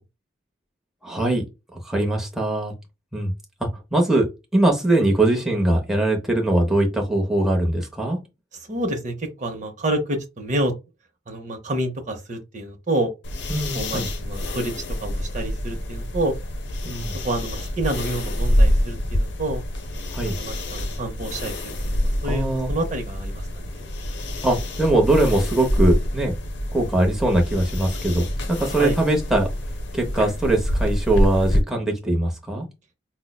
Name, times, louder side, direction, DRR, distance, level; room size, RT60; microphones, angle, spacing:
voice 1, 1.0-1.4 1.8-2.7 3.1-3.3 3.6-4.2 4.5-8.2 13.5-14.1 16.8-17.1 20.1-20.4 22.2-22.7 24.4-26.3 26.7-29.5 29.9-32.7, right 1 dB, ahead, 0.7 m, -21 dB
voice 2, 8.7-10.7 11.3-13.1 13.7-14.7 15.0-16.3 17.2-19.6 20.4-23.9 28.8-29.0, right 1 dB, 40° right, 0.6 m, -28 dB
sound 1, 13.2-31.6, equal, 60° left, 0.7 m, -26 dB
5.3 x 2.0 x 2.2 m
head